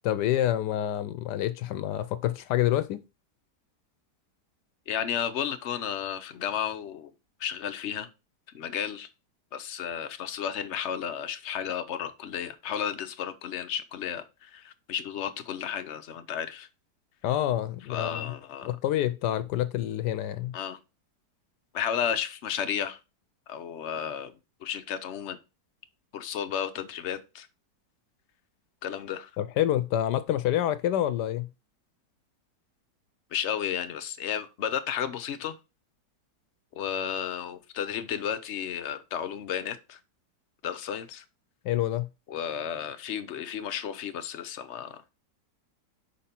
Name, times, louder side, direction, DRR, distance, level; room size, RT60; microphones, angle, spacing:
voice 1, 0.0-3.0 17.2-18.3 18.7-20.5 29.4-31.5 41.6-42.1, left 12 dB, 75° left, 1.1 m, -27 dB
voice 2, 4.9-7.1 7.4-8.1 8.5-9.1 9.5-16.7 17.9-18.7 20.5-20.8 21.7-23.0 23.5-24.3 24.6-25.4 26.1-27.5 28.8-29.3 33.3-35.6 36.7-40.0 40.6-41.2 42.3-45.0, left 8 dB, 60° left, 0.7 m, -33 dB
5.3 x 5.2 x 4.3 m
omnidirectional pair, 1.9 m